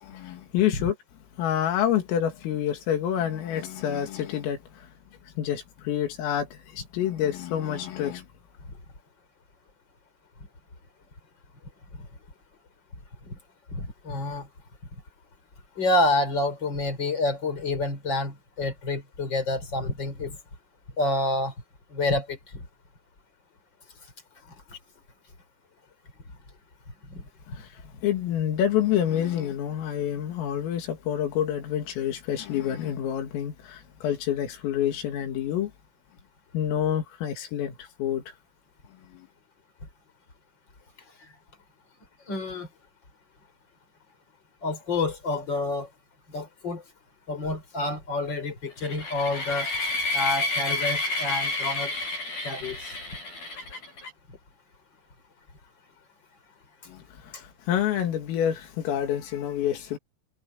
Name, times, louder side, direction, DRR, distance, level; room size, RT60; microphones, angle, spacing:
voice 1, 0.0-1.0 1.4-4.6 5.4-8.3 27.6-27.7 28.0-35.7 36.5-38.2 39.1-39.3 56.9-60.0, left 10 dB, 85° left, 5.3 m, -28 dB
voice 2, 13.7-14.5 15.8-20.4 21.0-21.5 21.9-22.6 27.1-27.2 42.3-42.7 44.6-45.9 46.3-46.8 47.3-49.7 50.1-51.9 52.4-52.9, left 2 dB, 20° left, 6.2 m, -28 dB
sound 1, 48.8-54.1, left 2 dB, 45° left, 9.1 m, -30 dB
omnidirectional pair, 5.8 m